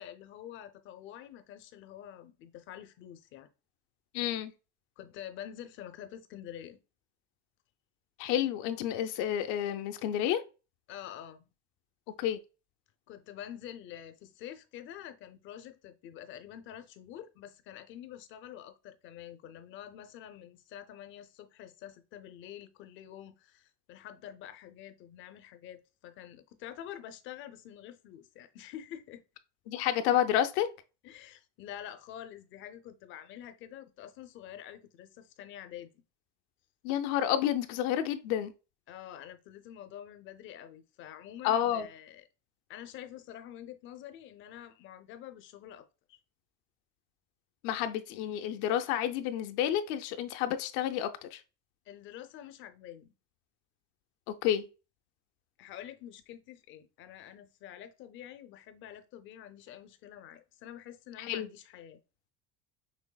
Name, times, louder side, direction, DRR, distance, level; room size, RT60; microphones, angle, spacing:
voice 1, 0.0-3.5 5.0-6.8 10.9-11.4 13.1-29.2 31.0-36.0 38.9-42.2 42.7-46.2 51.9-53.1 55.6-62.0, left 11 dB, 40° left, 0.5 m, -47 dB
voice 2, 4.1-4.5 8.2-10.4 12.1-12.4 29.7-30.7 36.8-38.5 41.4-41.9 47.6-51.4 54.3-54.7 61.2-61.5, left 11 dB, 80° left, 0.6 m, -30 dB
6.1 x 3.4 x 2.3 m
cardioid pair, 175°, 31 cm